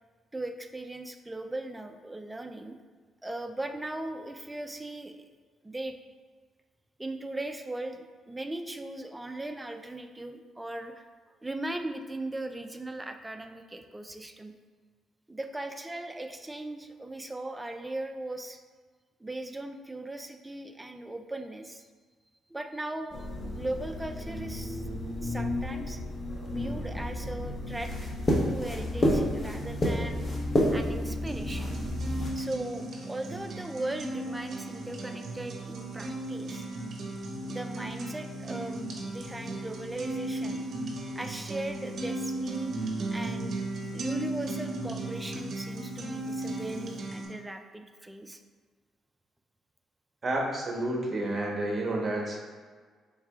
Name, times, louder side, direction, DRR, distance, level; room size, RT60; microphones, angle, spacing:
voice 1, 0.3-2.8 3.2-5.2 5.6-6.0 7.0-11.0 11.4-14.5 15.3-18.6 19.2-21.9 22.5-24.9 25.2-26.0 26.5-28.1 28.5-30.2 30.7-31.8 32.4-36.7 37.5-40.7 41.1-42.7 43.1-43.6 43.9-48.4, right 2 dB, 15° right, 6 dB, 0.3 m, -38 dB
sound 1, 23.1-32.3, left 1 dB, 30° left, 0.8 m, -30 dB
sound 2, 31.3-47.3, right 2 dB, 55° right, 0.7 m, -36 dB
voice 2, 50.2-52.4, right 1 dB, 35° right, -1 dB, 1.0 m, -30 dB
4.7 x 3.6 x 2.3 m, 1.5 s
cardioid pair, 90°, 0 cm